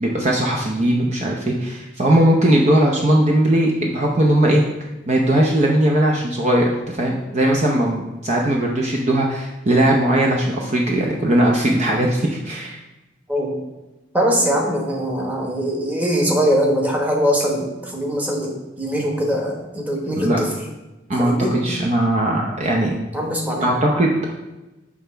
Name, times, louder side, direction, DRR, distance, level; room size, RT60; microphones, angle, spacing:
voice 1, 0.0-4.6 5.1-12.8 20.2-20.4 21.1-21.3 21.6-22.9 23.6-24.3, right 1 dB, 35° right, 0 dB, 0.7 m, -19 dB
voice 2, 13.3-13.6 14.1-20.5 21.2-21.8 23.1-23.7, equal, 10° right, -1 dB, 1.2 m, -22 dB
7.2 x 3.3 x 5.6 m, 1.0 s
head